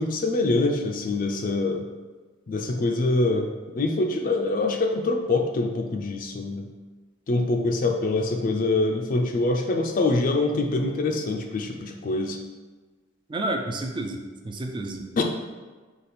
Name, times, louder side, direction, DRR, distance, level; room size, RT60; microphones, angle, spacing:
voice 1, 0.0-1.8 2.5-3.5 3.7-6.7 7.3-12.4 15.2-15.3, left 2 dB, 45° left, 3 dB, 0.4 m, -24 dB
voice 2, 13.3-15.0, right 1 dB, 25° right, 3 dB, 0.4 m, -30 dB
5.0 x 2.4 x 4.2 m, 1.3 s
head